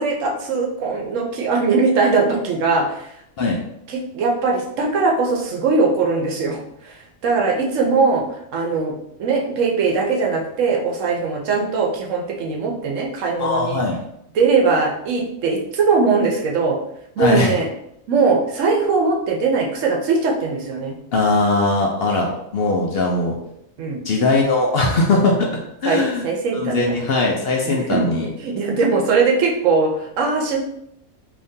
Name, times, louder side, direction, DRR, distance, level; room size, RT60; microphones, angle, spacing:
voice 1, 0.0-3.1 3.9-6.9 7.2-8.2 8.5-8.9 9.2-13.8 14.3-16.8 17.2-17.7 18.1-21.0 23.8-24.0 25.8-27.0 27.7-28.1 28.4-30.6, right 4 dB, 75° right, 1 dB, 1.0 m, -20 dB
voice 2, 13.4-14.0 17.2-17.5 21.1-23.3 24.0-26.3 26.5-28.3, left 2 dB, 60° left, 0 dB, 0.7 m, -20 dB
3.5 x 2.9 x 2.7 m, 0.76 s
omnidirectional pair, 1.4 m